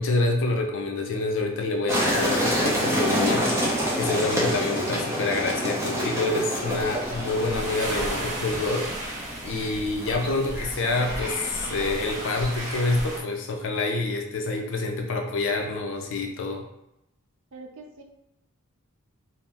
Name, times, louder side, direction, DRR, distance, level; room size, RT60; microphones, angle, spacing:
voice 1, 0.0-3.5 3.9-8.9 9.4-16.6, left 3 dB, 60° left, 3 dB, 0.5 m, -27 dB
sound 1, 1.9-13.1, equal, 10° right, 0.6 m, -28 dB
sound 2, 6.6-13.2, right 1 dB, 35° right, 0.9 m, -35 dB
voice 2, 17.5-18.0, right 3 dB, 65° right, 3 dB, 0.5 m, -44 dB
2.8 x 2.0 x 3.3 m, 0.84 s
head